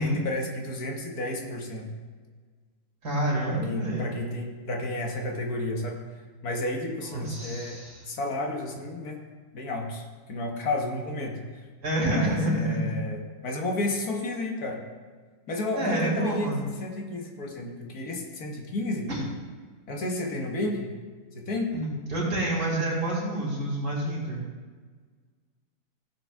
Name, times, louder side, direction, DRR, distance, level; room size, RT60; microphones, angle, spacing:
voice 1, 0.0-1.9 3.5-6.0 6.4-7.8 8.1-9.2 9.5-11.4 12.1-14.8 15.5-16.5 16.8-19.1 19.9-20.9 21.4-21.7, left 2 dB, 70° left, 1 dB, 1.9 m, -31 dB
voice 2, 3.0-4.1 7.0-8.1 11.8-12.9 15.8-16.6 19.1-19.3 21.7-24.4, right 1 dB, 65° right, -4 dB, 3.2 m, -28 dB
15.5 x 7.6 x 3.5 m, 1.5 s
omnidirectional pair, 1.7 m